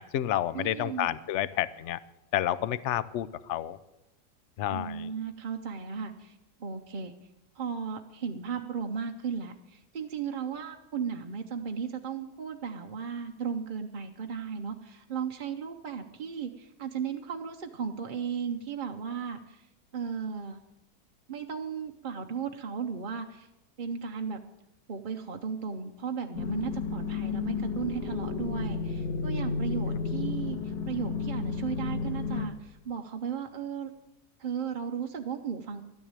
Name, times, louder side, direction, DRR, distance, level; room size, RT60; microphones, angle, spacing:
voice 1, 0.0-2.0 2.3-3.8 4.6-5.1, left 12 dB, 60° left, 17 dB, 0.8 m, -30 dB
voice 2, 0.5-1.1 4.7-7.1 7.5-19.7 19.9-20.6 21.3-23.5 23.8-24.4 24.9-33.9 34.4-35.8, right 6 dB, 45° right, 4 dB, 0.6 m, -35 dB
sound 1, 26.3-32.5, left 5 dB, 90° left, 1.7 m, -32 dB
12.5 x 9.7 x 8.8 m, 0.93 s
omnidirectional pair, 1.6 m